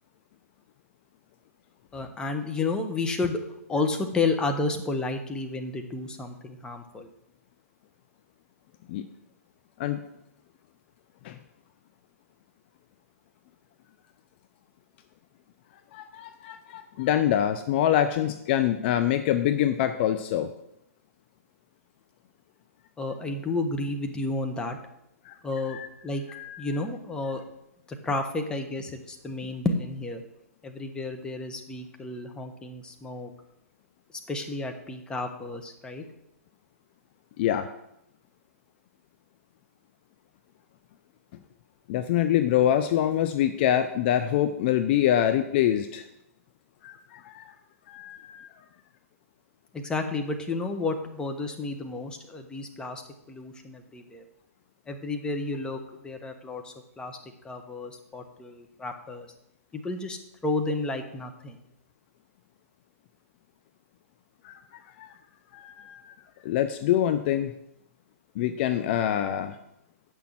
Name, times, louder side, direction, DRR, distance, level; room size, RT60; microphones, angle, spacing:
voice 1, 1.9-3.4 3.7-7.1 23.0-24.8 25.4-25.8 26.0-26.2 26.6-27.4 27.9-30.2 30.6-33.3 34.3-36.0 49.7-53.0 53.3-54.2 54.9-59.3 59.7-61.6, left 3 dB, 10° left, 4 dB, 1.1 m, -31 dB
voice 2, 15.9-20.5 25.2-25.4 25.7-25.9 26.3-26.7 37.4-37.7 41.9-46.0 46.8-47.5 47.9-48.5 64.4-64.6 65.0-65.1 65.5-66.1 66.4-67.5 68.4-69.6, left 11 dB, 40° left, 10 dB, 0.6 m, -25 dB
8.2 x 6.3 x 7.5 m, 0.82 s
hypercardioid pair, 125°, 8 cm